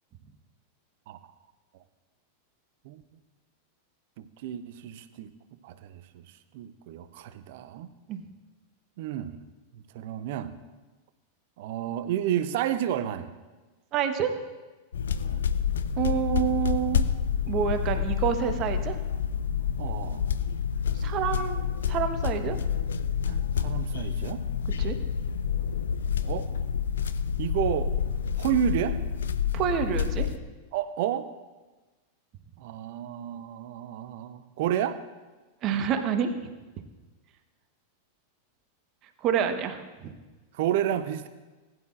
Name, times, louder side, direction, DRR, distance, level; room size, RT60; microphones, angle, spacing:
voice 1, 4.2-5.3 5.6-6.2 6.5-7.9 9.0-9.4 9.7-10.6 11.6-13.3 15.2-15.4 19.8-20.2 23.3-24.4 26.2-26.5 27.4-27.9 28.4-29.0 30.7-31.3 32.6-35.0 40.5-41.3, right 10 dB, 50° right, 12 dB, 0.8 m, -31 dB
voice 2, 13.9-14.3 16.0-17.0 17.5-19.0 20.9-21.6 21.9-22.6 24.8-25.0 29.5-30.3 35.6-36.3 39.2-40.1, right 8 dB, 35° right, 7 dB, 1.2 m, -27 dB
sound 1, 14.9-30.4, left 7 dB, 65° left, 0.5 m, -28 dB
20.0 x 11.0 x 2.5 m, 1.2 s
figure-of-eight pair, 90°, 0 cm